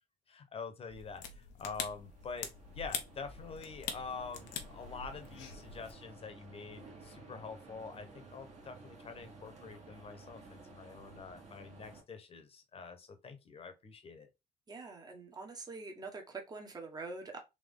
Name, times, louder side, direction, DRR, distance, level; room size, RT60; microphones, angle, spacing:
voice 1, 0.3-14.3, left 5 dB, 35° left, 1.0 m, -46 dB
sound 1, 0.9-5.9, left 7 dB, 85° left, 0.8 m, -44 dB
Shops at the Train Station, 1.6-12.0, right 3 dB, 40° right, 1.5 m, -55 dB
voice 2, 14.7-17.4, right 3 dB, 25° right, 1.1 m, -45 dB
3.9 x 3.0 x 3.5 m
cardioid pair, 110°, 17 cm